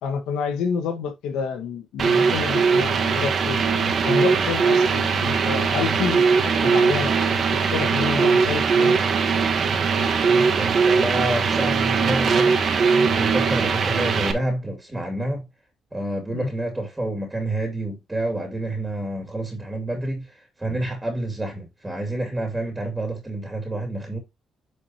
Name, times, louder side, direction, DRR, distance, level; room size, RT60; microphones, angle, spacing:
voice 1, 0.0-3.6 4.0-7.1 7.7-8.9 16.3-16.5, left 6 dB, 90° left, 1.7 m, -28 dB
sound 1, 2.0-14.3, right 5 dB, 55° right, 1.6 m, -20 dB
voice 2, 10.3-12.6 13.0-15.5 15.9-24.2, right 1 dB, 15° right, 2.5 m, -28 dB
9.6 x 4.9 x 3.0 m
cardioid pair, 90°, 0 cm